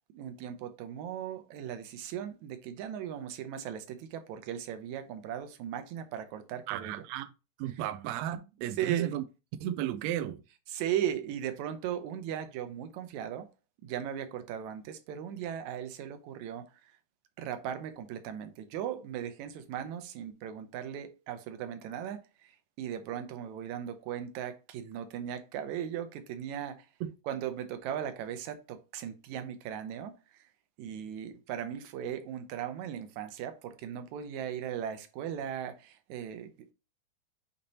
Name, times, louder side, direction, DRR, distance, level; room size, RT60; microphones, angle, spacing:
voice 1, 0.1-7.0 7.7-7.8 8.8-9.1 10.7-13.5 13.8-16.9 17.4-22.5 22.8-26.9 27.3-30.5 30.8-36.7, right 10 dB, 75° right, 1.9 m, -38 dB
voice 2, 6.7-7.3 7.6-9.2 9.6-10.4 27.0-27.1, right 12 dB, 90° right, 1.5 m, -34 dB
8.5 x 2.9 x 4.1 m
omnidirectional pair, 3.7 m